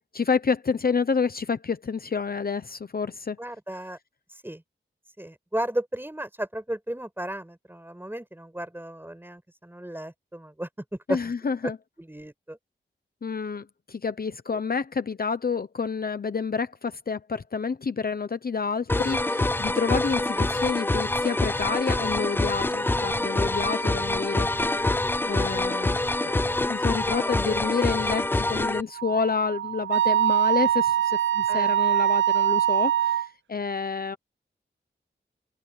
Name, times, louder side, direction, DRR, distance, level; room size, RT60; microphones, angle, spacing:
voice 1, 0.0-3.4 11.1-11.8 13.2-24.5 25.3-26.0 26.2-34.2, left 5 dB, 50° left, 0.8 m, -29 dB
voice 2, 3.4-4.0 4.4-4.6 5.2-11.2 12.0-12.6 23.4-23.6 25.5-25.6 31.5-31.7, right 1 dB, 10° right, 5.6 m, -34 dB
sound 1, 18.9-28.8, left 2 dB, 10° left, 0.3 m, -26 dB
Wind instrument woodwind instrument, 28.9-33.3, right 10 dB, 85° right, 0.5 m, -23 dB
wide cardioid pair, 110°, 19 cm